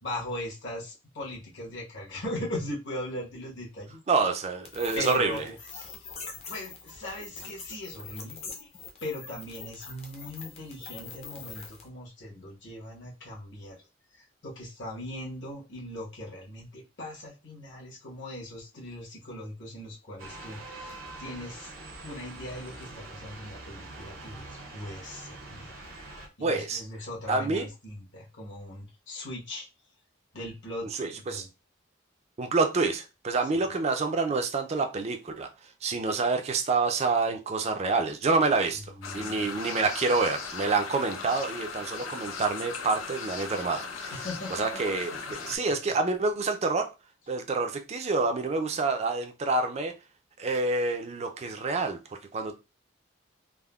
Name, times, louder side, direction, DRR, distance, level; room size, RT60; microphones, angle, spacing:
voice 1, 0.0-4.0 4.9-6.0 6.5-8.7 9.0-13.8 14.1-21.7 22.0-25.8 26.4-29.7 30.3-31.5 33.5-33.6 39.0-39.5 44.1-45.5, left 1 dB, 60° left, 1.0 m, -39 dB
voice 2, 4.1-5.4 26.4-26.8 27.3-27.7 30.9-31.5 32.4-35.5 35.8-38.9 39.1-44.1 44.5-46.9 47.3-49.9 50.4-52.6, right 3 dB, 30° right, 0.3 m, -27 dB
sound 1, 4.6-11.9, left 5 dB, 30° left, 0.5 m, -44 dB
sound 2, 20.2-26.3, right 2 dB, 70° right, 0.6 m, -44 dB
sound 3, 39.0-45.6, left 5 dB, 80° left, 0.5 m, -38 dB
3.5 x 2.0 x 2.2 m
head